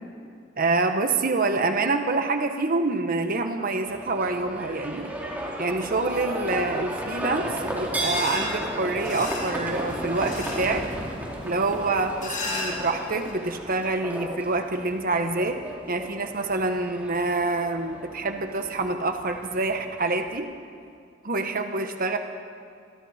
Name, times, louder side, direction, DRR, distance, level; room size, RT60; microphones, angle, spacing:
voice 1, 0.6-5.1 5.6-10.9 11.4-15.6 15.9-20.5 21.2-22.2, right 3 dB, 45° right, 6 dB, 1.3 m, -26 dB
Livestock farm animals working animals, 3.9-20.3, right 1 dB, 10° right, 3.2 m, -34 dB
sound 1, 8.0-13.3, left 2 dB, 45° left, 5.6 m, -36 dB
26.5 x 22.5 x 4.4 m, 2.4 s
head